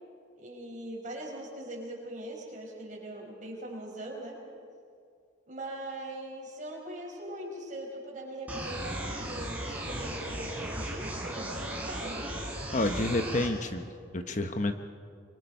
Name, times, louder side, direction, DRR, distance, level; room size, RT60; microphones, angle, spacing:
voice 1, 0.4-4.4 5.5-12.3, right 1 dB, 40° right, -1 dB, 5.2 m, -41 dB
sound 1, 8.5-13.5, right 1 dB, 10° right, 3.6 m, -36 dB
voice 2, 12.7-14.7, left 2 dB, 40° left, 8 dB, 0.9 m, -29 dB
25.0 x 24.0 x 5.4 m, 2.2 s
head